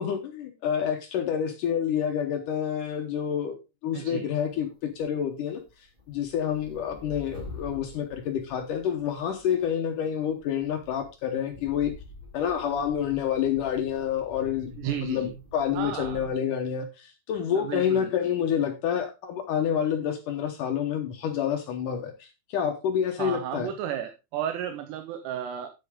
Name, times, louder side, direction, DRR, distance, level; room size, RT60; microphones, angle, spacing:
voice 1, 0.0-3.6 3.8-5.6 6.1-11.9 12.3-23.7, left 8 dB, 70° left, 6 dB, 2.0 m, -28 dB
voice 2, 3.9-4.3 14.8-15.3 15.7-16.3 17.6-18.1 23.2-25.7, right 10 dB, 80° right, 7 dB, 3.0 m, -33 dB
sound 1, 4.4-5.2 5.5-9.7 10.3-16.3, left 2 dB, 20° right, 1.7 m, -46 dB
9.6 x 8.2 x 3.6 m, 0.27 s
omnidirectional pair, 4.9 m